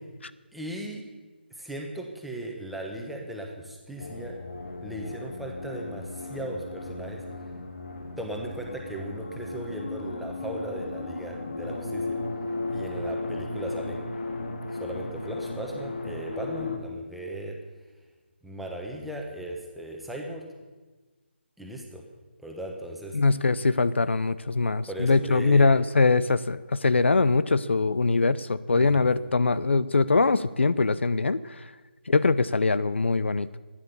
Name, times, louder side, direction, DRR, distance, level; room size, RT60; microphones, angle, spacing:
voice 1, 0.5-1.0 1.5-4.4 4.8-7.2 8.2-12.2 12.7-14.1 14.8-17.6 18.4-20.4 21.6-22.0 22.4-23.2 24.8-25.8 28.7-29.1, right 1 dB, ahead, 0 dB, 1.1 m, -37 dB
sound 1, 4.0-16.8, left 2 dB, 60° left, 2.0 m, -35 dB
voice 2, 23.1-31.4 32.1-33.5, left 3 dB, 75° left, 16 dB, 0.6 m, -22 dB
14.0 x 10.0 x 6.9 m, 1.3 s
figure-of-eight pair, 160°, 6 cm